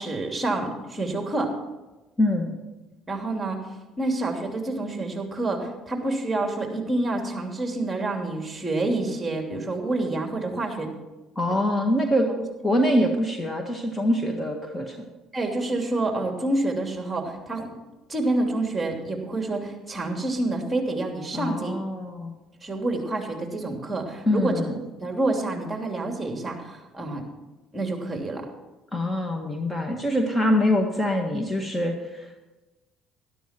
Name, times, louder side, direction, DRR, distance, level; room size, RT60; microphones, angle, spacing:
voice 1, 0.0-1.5 3.1-3.6 4.0-10.9 15.3-17.7 18.1-21.8 22.6-24.7 25.0-27.2 27.7-28.5, right 2 dB, 15° right, 2 dB, 3.0 m, -28 dB
voice 2, 2.2-2.5 11.4-12.3 12.6-15.1 21.3-22.3 24.3-24.7 28.9-32.4, left 1 dB, 20° left, 3 dB, 1.7 m, -24 dB
12.5 x 12.5 x 4.6 m, 1.1 s
supercardioid pair, 70°, 0 cm